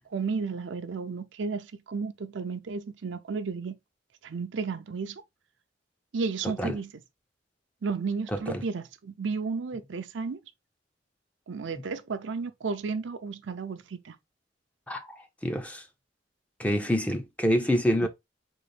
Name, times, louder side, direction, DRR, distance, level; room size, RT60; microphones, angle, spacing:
voice 1, 0.0-3.8 4.2-5.2 6.1-6.9 7.8-10.4 11.5-14.2 18.0-18.1, right 4 dB, 75° right, 0.5 m, -33 dB
voice 2, 15.4-15.8 16.6-18.1, equal, 10° left, 0.5 m, -26 dB
3.9 x 2.5 x 3.2 m
head